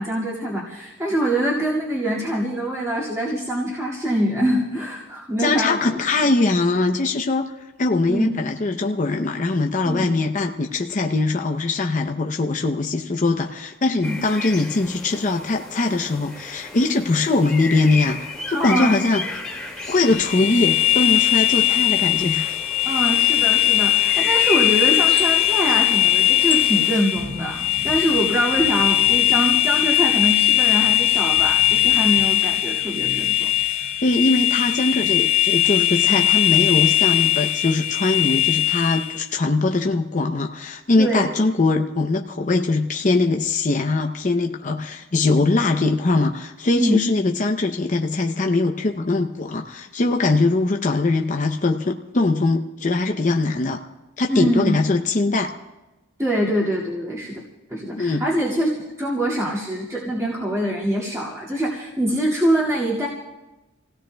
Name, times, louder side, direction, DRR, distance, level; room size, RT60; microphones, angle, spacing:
voice 1, 0.0-6.0 8.1-8.3 9.8-10.1 14.0-14.2 18.5-19.3 22.8-33.5 41.0-41.3 46.8-47.0 54.3-54.8 56.2-57.4 57.7-58.7 59.0-63.1, equal, 15° right, -8 dB, 2.1 m, -24 dB
voice 2, 5.4-7.5 7.8-19.2 19.9-22.5 34.0-53.8 54.2-55.5 58.0-58.2, left 3 dB, 35° left, 3 dB, 0.6 m, -21 dB
sound 1, 14.0-27.0, left 4 dB, 5° left, 2.1 m, -33 dB
sound 2, 18.4-35.2, left 1 dB, 60° right, 4.2 m, -45 dB
sound 3, 20.0-39.2, left 14 dB, 90° left, 2.1 m, -19 dB
30.0 x 17.0 x 2.3 m, 1.1 s
head